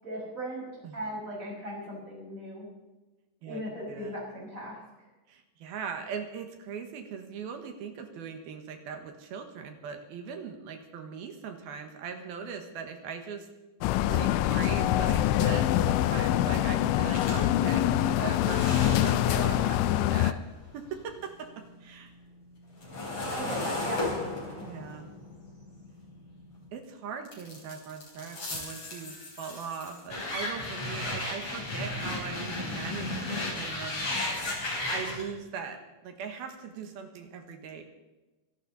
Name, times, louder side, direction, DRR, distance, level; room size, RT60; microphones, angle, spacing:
voice 1, 0.0-2.7 3.4-4.8 23.3-24.3 28.3-28.4, equal, 15° right, -3 dB, 6.1 m, -38 dB
voice 2, 5.3-13.5 14.0-20.4 20.7-21.5 21.8-22.1 24.6-25.1 26.7-34.0 34.9-37.8, right 6 dB, 65° right, 5 dB, 2.9 m, -40 dB
sound 1, 13.8-20.3, left 13 dB, 85° left, 3.0 m, -25 dB
sound 2, 17.1-21.4 21.8-26.7 27.2-35.2, left 2 dB, 30° left, 5.1 m, -35 dB
26.0 x 12.0 x 4.1 m, 1.1 s
omnidirectional pair, 5.3 m